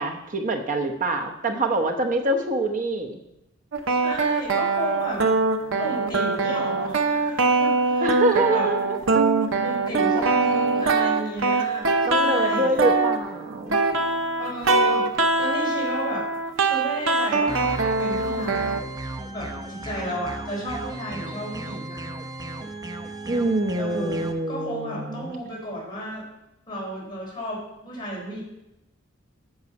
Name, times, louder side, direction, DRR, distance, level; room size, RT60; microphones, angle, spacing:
voice 1, 0.0-3.2 8.0-9.2 12.0-13.8 23.3-25.3, right 2 dB, 40° right, 3 dB, 0.9 m, -25 dB
sound 1, 3.7-18.8, right 3 dB, 75° right, 0.8 m, -23 dB
voice 2, 3.9-5.3 5.8-8.7 9.6-12.8 14.4-16.3 16.6-18.8 19.3-22.0 23.8-26.2 26.7-28.4, equal, 25° left, -5 dB, 3.9 m, -33 dB
sound 2, 17.5-24.3, right 2 dB, 20° right, 0.6 m, -35 dB
8.1 x 6.3 x 5.3 m, 0.88 s
head